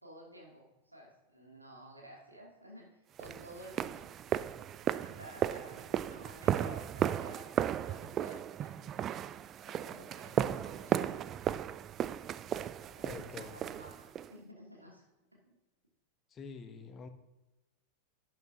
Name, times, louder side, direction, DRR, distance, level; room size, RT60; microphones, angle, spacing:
voice 1, 0.0-2.9 3.2-4.4 5.0-7.5 7.8-8.7 9.6-11.2 12.9-13.1 13.4-15.0 15.3-15.5, right 1 dB, 85° right, -2 dB, 2.6 m, -53 dB
sound 1, 3.2-14.3, right 10 dB, 30° right, 0.3 m, -35 dB
voice 2, 13.0-13.5 16.3-17.1, left 5 dB, 25° left, 8 dB, 1.0 m, -46 dB
12.0 x 8.7 x 2.8 m, 1.0 s
figure-of-eight pair, 90°, 0 cm